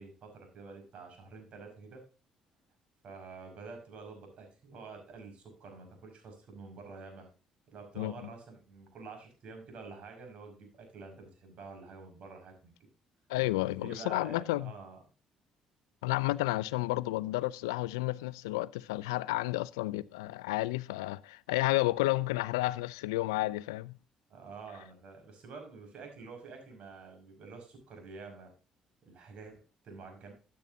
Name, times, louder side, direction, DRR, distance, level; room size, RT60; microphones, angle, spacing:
voice 1, 0.0-2.0 3.0-7.3 7.7-12.7 13.8-15.0 24.3-28.5 29.0-30.3, right 4 dB, 60° right, 5.4 m, -48 dB
voice 2, 13.3-14.7 16.0-23.9, left 18 dB, 90° left, 0.4 m, -31 dB
13.5 x 8.4 x 2.7 m
hypercardioid pair, 60°, 2 cm